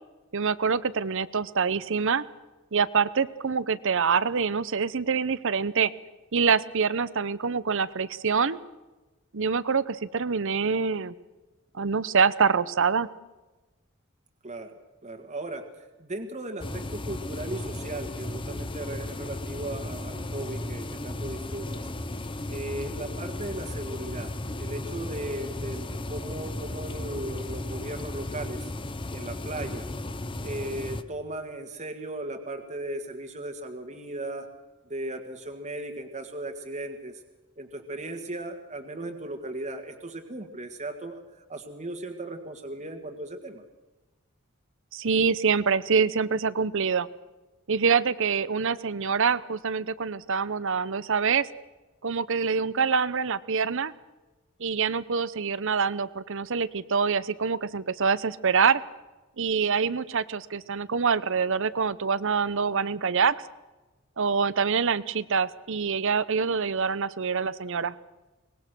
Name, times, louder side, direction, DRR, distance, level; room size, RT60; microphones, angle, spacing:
voice 1, 0.3-2.2 2.7-5.9 6.3-8.6 9.3-11.1 11.7-13.1 44.9-47.1 47.7-51.5 52.0-53.9 54.6-58.8 59.4-63.4 64.2-67.9, right 5 dB, 65° right, 17 dB, 0.8 m, -25 dB
voice 2, 14.4-14.7 15.0-21.8 22.5-24.3 24.6-28.7 29.1-29.9 30.4-34.5 34.9-37.2 37.6-43.6, right 1 dB, 35° right, 4 dB, 1.7 m, -37 dB
sound 1, 16.6-31.0, left 2 dB, 25° left, 0.9 m, -35 dB
23.5 x 20.5 x 6.2 m, 1.1 s
head